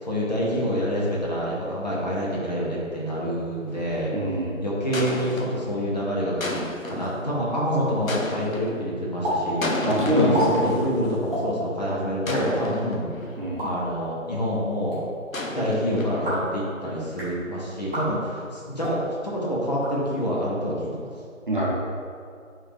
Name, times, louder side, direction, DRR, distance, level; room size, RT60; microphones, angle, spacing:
voice 1, 0.0-4.1 4.6-13.1 13.6-15.0 15.5-21.1, equal, 30° left, -6 dB, 1.1 m, -27 dB
sound 1, 3.7-4.0 4.9-5.7 6.4-7.2 8.1-8.8 9.6-11.3 12.3-13.5 15.3-16.6, left 2 dB, 80° left, 1.0 m, -32 dB
voice 2, 4.1-4.6 9.8-10.7 13.4-13.7 21.5-21.7, right 1 dB, 40° right, -4 dB, 0.9 m, -24 dB
sound 2, 9.2-9.4 9.6-9.7 10.2-10.5 11.2-11.4 12.1-12.4 13.4-13.7 14.7-15.0 16.1-16.5 17.0-17.3 17.8-18.1 18.7-19.0 19.7-20.4, equal, 5° right, 1.2 m, -31 dB
7.7 x 3.8 x 3.4 m, 2.2 s
figure-of-eight pair, 165°, 40 cm